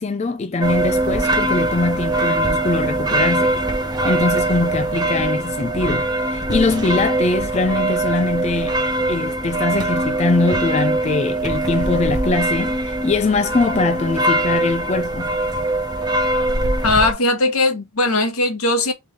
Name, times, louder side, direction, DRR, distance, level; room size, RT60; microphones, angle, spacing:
voice 1, 0.0-3.5 4.0-8.8 9.1-15.3, left 3 dB, 30° left, 0.4 m, -22 dB
sound 1, 0.6-17.1, right 2 dB, 20° right, 1.1 m, -22 dB
voice 2, 16.8-18.9, left 2 dB, 85° left, 1.3 m, -19 dB
3.8 x 3.6 x 3.6 m
head